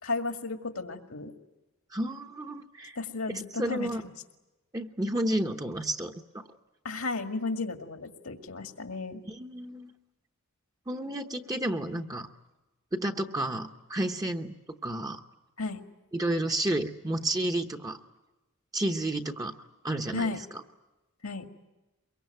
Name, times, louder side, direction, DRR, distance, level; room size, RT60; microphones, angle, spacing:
voice 1, 0.0-1.3 3.0-3.9 6.8-9.2 15.6-15.8 20.1-20.4 21.2-21.5, left 3 dB, 80° left, 5 dB, 2.0 m, -33 dB
voice 2, 1.9-3.0 3.3-4.0 4.7-6.4 9.3-9.9 10.9-12.3 12.9-14.5 14.8-15.2 16.1-18.0 18.7-19.5 19.8-20.3, right 1 dB, 15° right, 3 dB, 0.9 m, -31 dB
23.5 x 23.0 x 9.1 m, 1.1 s
head